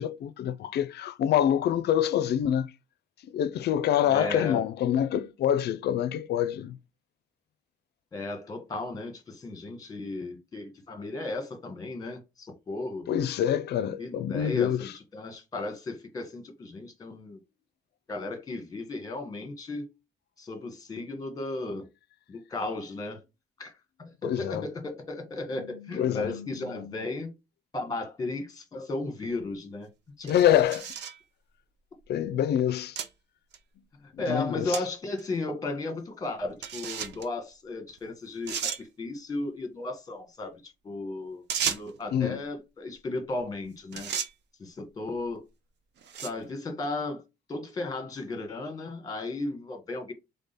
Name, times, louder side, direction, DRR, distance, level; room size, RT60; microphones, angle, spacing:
voice 1, 0.0-2.7 3.3-6.7 13.1-14.9 24.2-24.6 26.0-27.1 30.3-30.9 32.1-33.0 34.3-34.8 42.1-42.4, left 10 dB, 65° left, 0.5 m, -26 dB
voice 2, 4.0-4.7 8.1-13.1 14.0-17.4 18.1-19.9 20.4-21.9 22.3-23.2 23.6-23.7 24.0-27.3 27.7-29.9 30.2-30.3 34.0-44.1 44.6-45.4 46.2-47.2 47.5-50.1, left 2 dB, 20° left, 1.4 m, -35 dB
sound 1, 29.3-29.4 30.3-31.2 32.0-32.1 33.0-33.1 33.5-33.6 34.7-34.8 35.2-35.3 36.6-37.3 38.0-38.1 38.5-38.8 41.5-42.0 43.4-43.6 43.9-44.3 45.1-45.4 46.0-46.4, right 7 dB, 75° right, 0.7 m, -33 dB
3.7 x 3.6 x 4.1 m
cardioid pair, 155°, 18 cm